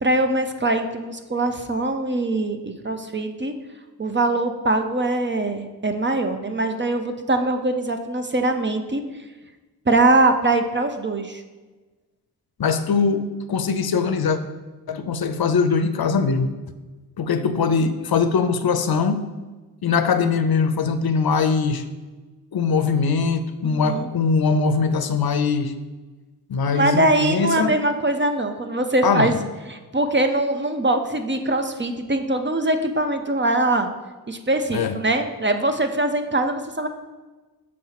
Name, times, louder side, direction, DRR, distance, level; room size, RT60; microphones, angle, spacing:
voice 1, 0.0-3.5 4.0-9.0 9.9-11.4 23.6-24.1 26.7-29.3 29.7-33.9 34.3-36.9, right 2 dB, 30° right, 7 dB, 0.5 m, -22 dB
voice 2, 12.6-14.4 14.9-16.5 17.2-19.2 19.8-21.8 22.5-25.7 26.5-27.7 29.0-29.4 34.7-35.0, left 5 dB, 70° left, 10 dB, 0.6 m, -21 dB
6.4 x 4.2 x 5.7 m, 1.2 s
wide cardioid pair, 120°, 39 cm